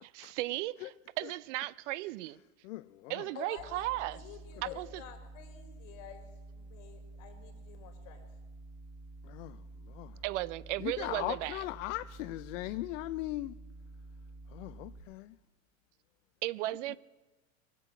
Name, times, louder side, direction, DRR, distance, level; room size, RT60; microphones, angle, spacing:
voice 1, 0.0-2.4 3.1-4.2 4.6-5.0 10.2-11.6 16.4-17.0, right 17 dB, 65° right, 0.5 m, -36 dB
voice 2, 2.6-3.2 9.2-10.2 10.8-13.5 14.5-15.4 16.9-17.0, left 18 dB, 70° left, 0.5 m, -39 dB
voice 3, 3.3-8.2, left 8 dB, 50° left, 3.4 m, -49 dB
sound 1, 3.6-15.0, right 2 dB, 35° right, 1.6 m, -50 dB
19.0 x 7.5 x 8.1 m
supercardioid pair, 125°, 40 cm